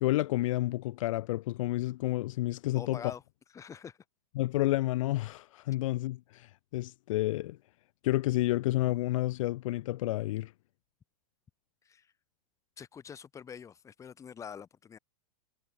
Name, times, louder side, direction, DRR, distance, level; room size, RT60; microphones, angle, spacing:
voice 1, 0.0-3.0 4.4-7.6 8.0-10.5, left 17 dB, 65° left, 0.7 m, -30 dB
voice 2, 2.7-3.2 3.5-4.0 11.8-12.1 12.8-15.0, left 7 dB, 15° left, 4.2 m, -45 dB
supercardioid pair, 150°, 18 cm